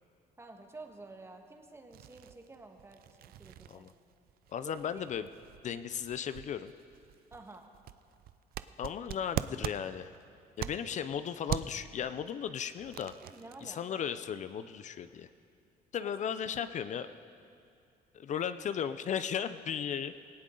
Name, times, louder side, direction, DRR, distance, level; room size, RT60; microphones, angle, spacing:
voice 1, 0.4-3.9 4.6-5.0 7.3-7.6 13.3-13.8 16.0-16.1, right 2 dB, 15° right, 3 dB, 1.5 m, -50 dB
sound 1, 1.9-11.1 11.5-11.9 12.4-13.7, right 12 dB, 65° right, 0.5 m, -42 dB
voice 2, 4.5-5.3 5.6-6.7 8.8-10.1 10.6-13.1 13.6-15.3 15.9-17.1 18.1-20.2, left 8 dB, 45° left, 12 dB, 0.5 m, -36 dB
18.5 x 16.5 x 3.9 m, 2.4 s
cardioid pair, 110°, 17 cm